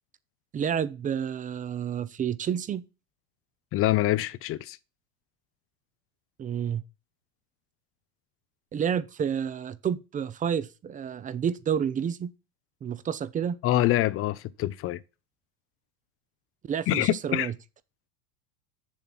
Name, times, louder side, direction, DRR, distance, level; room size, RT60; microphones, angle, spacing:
voice 1, 0.5-2.9 6.4-6.8 8.7-12.3 12.8-13.6 16.6-17.5, right 8 dB, 20° right, 0.5 m, -30 dB
voice 2, 3.7-4.8 13.6-15.0 16.9-17.5, left 15 dB, 30° left, 0.5 m, -25 dB
7.1 x 7.1 x 6.0 m
supercardioid pair, 115°, 45 cm